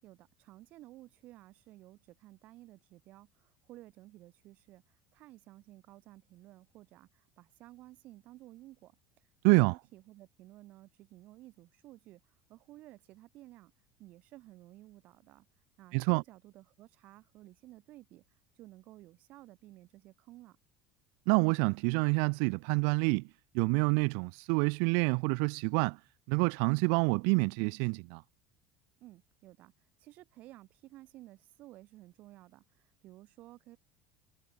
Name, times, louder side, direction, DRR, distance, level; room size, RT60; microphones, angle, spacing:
voice 1, 0.0-9.0 9.4-13.7 14.0-15.5 15.8-18.2 18.6-20.6 29.0-29.7 30.0-33.8, right 16 dB, 50° right, 7.5 m, -54 dB
voice 2, 15.9-16.2 21.3-23.3 23.5-26.0 26.3-28.2, right 40 dB or more, 70° right, 0.9 m, -27 dB
cardioid pair, 150°, 4 cm